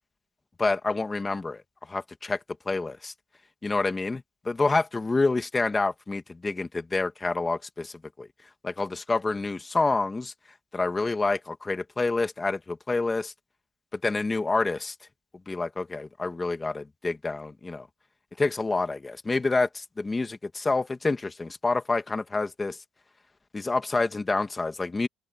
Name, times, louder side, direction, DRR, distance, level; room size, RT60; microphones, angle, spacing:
voice 1, 0.6-1.6 1.9-2.4 2.7-3.1 3.6-8.3 8.6-10.3 10.7-13.3 13.9-14.9 15.5-17.9 18.4-22.8 23.5-25.1, left 3 dB, 15° left, 2.0 m, -28 dB
cardioid pair, 125°, 0 cm